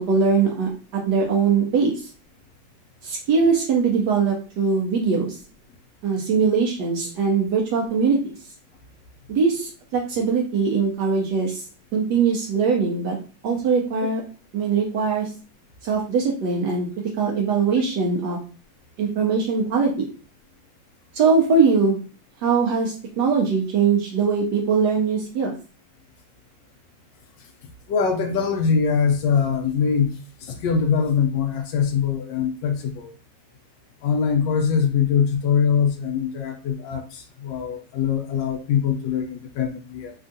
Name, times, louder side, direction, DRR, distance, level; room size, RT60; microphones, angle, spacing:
voice 1, 0.0-2.1 3.0-5.4 6.0-8.2 9.3-11.6 11.9-13.2 13.4-14.2 14.5-15.3 15.8-16.9 17.2-18.4 19.0-20.1 21.1-22.0 22.4-25.5, right 5 dB, 70° right, 0 dB, 1.2 m, -21 dB
voice 2, 27.9-30.1 30.4-33.1 34.0-40.1, left 6 dB, 75° left, 5 dB, 1.2 m, -22 dB
3.4 x 2.3 x 2.6 m, 0.36 s
omnidirectional pair, 2.0 m